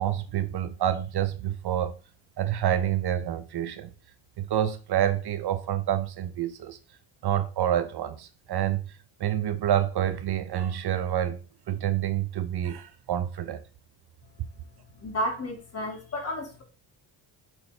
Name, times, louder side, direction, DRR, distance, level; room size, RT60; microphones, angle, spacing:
voice 1, 0.0-2.0 2.4-3.9 4.4-6.8 7.2-8.8 9.2-11.4 11.7-13.6, right 11 dB, 55° right, 0.7 m, -27 dB
voice 2, 15.0-16.6, equal, 30° left, 2.2 m, -32 dB
6.3 x 6.1 x 3.2 m
cardioid pair, 135°, 47 cm